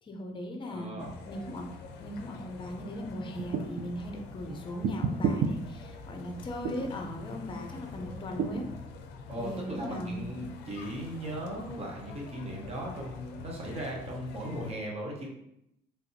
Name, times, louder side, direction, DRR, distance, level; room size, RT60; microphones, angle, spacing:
voice 1, 0.0-1.7 2.0-8.7 9.4-10.4, left 1 dB, 30° left, 3 dB, 0.6 m, -38 dB
voice 2, 0.6-1.1 9.3-15.3, right 1 dB, 35° right, -1 dB, 1.0 m, -38 dB
sound 1, 1.0-14.7, left 4 dB, 90° left, 0.4 m, -45 dB
sound 2, 3.4-3.9 4.8-5.5 6.6-6.9 8.4-8.7, right 6 dB, 55° right, 0.4 m, -29 dB
3.3 x 2.7 x 2.7 m, 0.79 s
cardioid pair, 110°, 17 cm